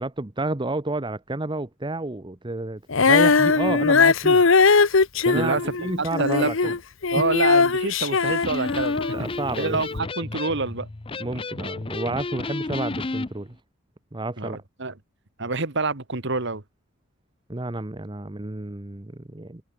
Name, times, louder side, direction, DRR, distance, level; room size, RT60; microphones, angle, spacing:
voice 1, 0.0-4.4 5.2-6.7 7.1-7.2 9.1-9.8 11.2-13.6 14.1-14.6 17.5-19.6, right 2 dB, 25° right, 0.9 m, -30 dB
Female singing, 2.9-9.3 10.0-10.1, left 4 dB, 65° left, 1.0 m, -19 dB
voice 2, 5.3-5.8 6.2-6.7 7.1-9.2 9.6-10.9 14.4-14.9 15.4-16.6, right 3 dB, 60° right, 2.1 m, -27 dB
Electric guitar, 8.3-13.3, left 3 dB, 25° left, 0.6 m, -32 dB
head